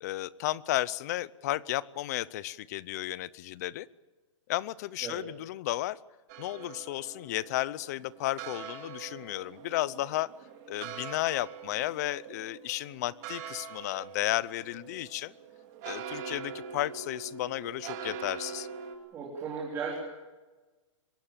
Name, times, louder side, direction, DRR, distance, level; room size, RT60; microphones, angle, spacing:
voice 1, 0.0-3.9 4.5-6.0 6.4-10.3 10.7-15.3 15.8-18.7, left 16 dB, 30° left, 21 dB, 0.6 m, -33 dB
sound 1, 6.3-19.0, right 7 dB, 30° right, 3.3 m, -43 dB
voice 2, 19.1-19.9, right 5 dB, 15° right, -3 dB, 3.8 m, -36 dB
23.5 x 20.5 x 7.5 m, 1.2 s
hypercardioid pair, 170°, 16 cm